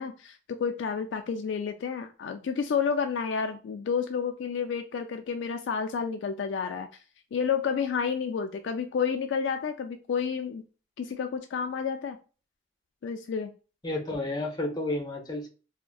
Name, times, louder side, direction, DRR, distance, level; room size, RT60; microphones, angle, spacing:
voice 1, 0.0-6.9 7.3-10.6 11.0-12.2 13.0-13.5, left 6 dB, 65° left, 6 dB, 0.3 m, -30 dB
voice 2, 13.8-15.5, left 2 dB, 20° left, 1 dB, 0.7 m, -31 dB
3.5 x 2.1 x 2.2 m, 0.35 s
head